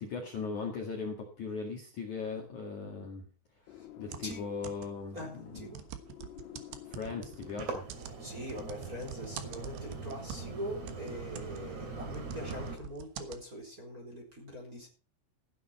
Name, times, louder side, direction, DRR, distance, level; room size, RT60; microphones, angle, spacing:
voice 1, 0.0-3.3 4.0-5.7 6.9-7.8, left 5 dB, 50° left, 1 dB, 2.8 m, -38 dB
sound 1, 3.7-8.3, left 11 dB, 85° left, 3.4 m, -52 dB
sound 2, 4.0-5.1 5.5-10.6 10.9-13.4, right 9 dB, 70° right, 2.9 m, -45 dB
voice 2, 5.1-5.8 8.2-14.9, equal, 20° right, 0 dB, 4.0 m, -43 dB
sound 3, 7.3-12.8, right 4 dB, 40° right, 3.5 m, -42 dB
15.5 x 10.5 x 4.3 m, 0.38 s
omnidirectional pair, 5.5 m